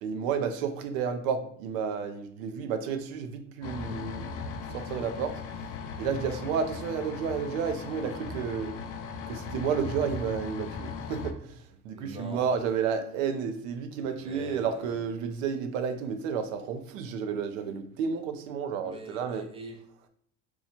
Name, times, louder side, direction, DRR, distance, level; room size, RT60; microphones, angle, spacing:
voice 1, 0.0-4.2 4.7-5.3 6.0-8.7 9.3-19.4, right 6 dB, 85° right, 0.6 m, -31 dB
sound 1, 3.6-11.3, left 5 dB, 50° left, 0.5 m, -38 dB
voice 2, 6.1-6.5 11.9-12.6 13.9-15.0 18.8-20.1, right 1 dB, 15° right, 0.5 m, -44 dB
2.9 x 2.3 x 4.1 m
supercardioid pair, 110°, 38 cm